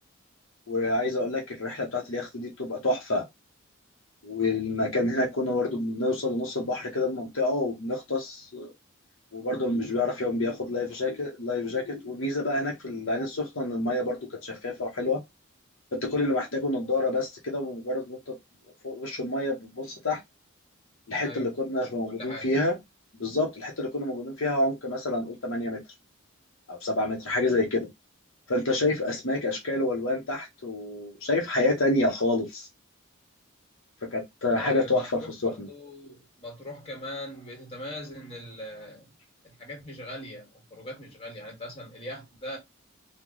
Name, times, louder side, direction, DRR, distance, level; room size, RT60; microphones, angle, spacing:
voice 1, 0.7-3.2 4.2-8.7 9.3-15.2 15.9-18.4 18.8-20.2 21.1-22.8 23.1-25.8 26.7-27.9 28.5-32.7 34.1-35.1 35.4-35.5, left 2 dB, 70° left, 0.9 m, -28 dB
voice 2, 22.1-22.5 34.5-39.1 39.4-42.6, left 1 dB, 30° left, 1.4 m, -41 dB
3.0 x 2.3 x 3.8 m
head